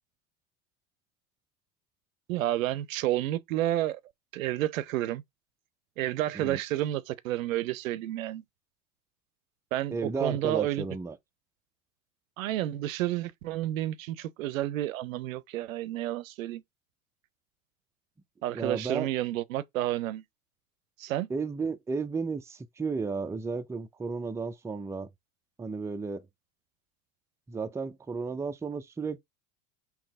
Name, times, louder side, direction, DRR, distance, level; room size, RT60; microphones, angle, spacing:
voice 1, 2.3-4.0 4.3-5.2 6.0-8.4 9.7-10.8 12.4-16.6 18.4-20.2 21.0-21.3, right 14 dB, 85° right, 0.6 m, -30 dB
voice 2, 9.9-11.2 18.5-19.1 21.3-25.1 25.6-26.3 27.5-29.2, right 4 dB, 5° right, 0.4 m, -33 dB
3.8 x 3.0 x 3.5 m
hypercardioid pair, 90°, 39 cm